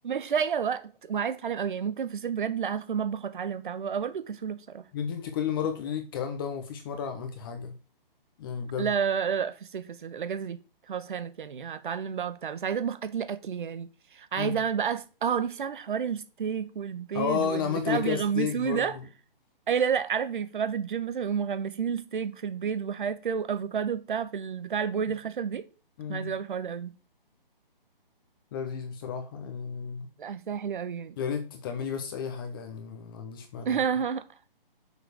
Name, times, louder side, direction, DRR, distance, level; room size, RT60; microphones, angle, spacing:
voice 1, 0.0-4.8 8.8-10.6 10.9-19.0 19.7-25.7 26.1-26.9 30.2-31.1 33.6-34.2, right 7 dB, 60° right, 1.1 m, -30 dB
voice 2, 4.9-7.8 8.4-8.9 14.4-14.6 17.1-19.1 26.0-26.3 28.5-30.1 31.2-33.8, left 7 dB, 25° left, 0.9 m, -32 dB
6.5 x 4.9 x 6.5 m
hypercardioid pair, 150°, 29 cm